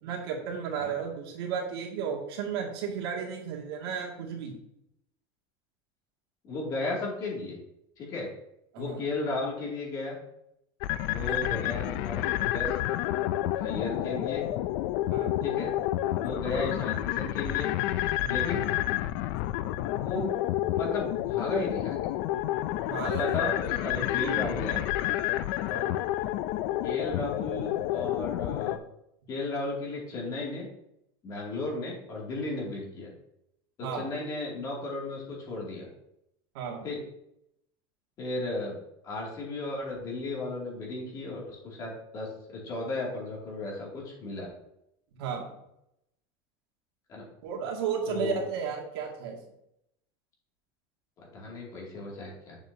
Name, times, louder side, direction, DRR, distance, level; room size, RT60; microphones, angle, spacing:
voice 1, 0.0-4.5 8.7-9.0 11.1-11.4 15.1-15.4 18.2-18.4 22.9-23.4 25.3-25.9 33.8-34.1 36.5-36.9 45.1-45.4 47.4-49.4, right 6 dB, 75° right, -1 dB, 2.1 m, -34 dB
voice 2, 6.4-7.6 8.0-8.3 8.8-10.2 11.0-12.7 13.5-14.5 15.4-15.7 16.2-17.7 18.3-18.7 20.0-20.3 20.7-22.1 23.0-24.8 26.8-28.8 29.3-30.7 31.2-33.1 33.8-35.9 36.8-37.0 38.2-38.8 39.0-44.5 47.1-47.2 48.1-48.4 51.2-52.6, left 2 dB, 30° left, -3 dB, 2.4 m, -34 dB
sound 1, 10.8-28.8, left 14 dB, 45° left, 0.4 m, -29 dB
8.9 x 7.1 x 2.7 m, 0.80 s
supercardioid pair, 175°, 13 cm